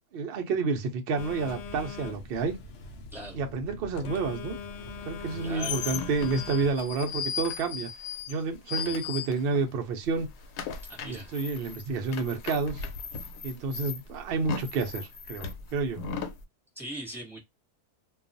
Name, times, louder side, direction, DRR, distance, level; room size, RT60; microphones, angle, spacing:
voice 1, 0.1-2.6 3.3-4.5 5.1-7.9 8.3-10.3 11.0-12.8 13.4-16.0, right 4 dB, 70° right, 0.5 m, -30 dB
Telephone, 1.2-6.7, left 4 dB, 70° left, 0.7 m, -41 dB
sound 1, 5.1-9.8 10.0-16.4, left 6 dB, 85° left, 1.1 m, -37 dB
voice 2, 5.4-5.8 8.8-9.0 10.8-11.3 16.7-17.4, right 1 dB, ahead, 0.9 m, -40 dB
2.3 x 2.3 x 2.5 m
omnidirectional pair, 1.6 m